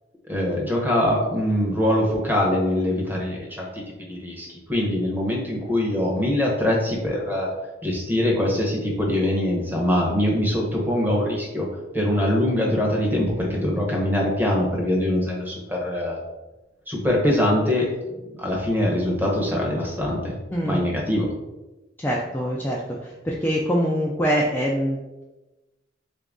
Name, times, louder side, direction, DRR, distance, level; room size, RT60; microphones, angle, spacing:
voice 1, 0.3-7.5 7.8-11.7 11.9-16.2 16.9-17.9 18.4-20.3 20.6-21.3, left 1 dB, 10° right, -2 dB, 0.7 m, -23 dB
voice 2, 20.5-20.8 22.0-22.8 23.2-25.0, equal, 10° left, -4 dB, 0.3 m, -23 dB
3.8 x 2.5 x 3.5 m, 1.1 s
head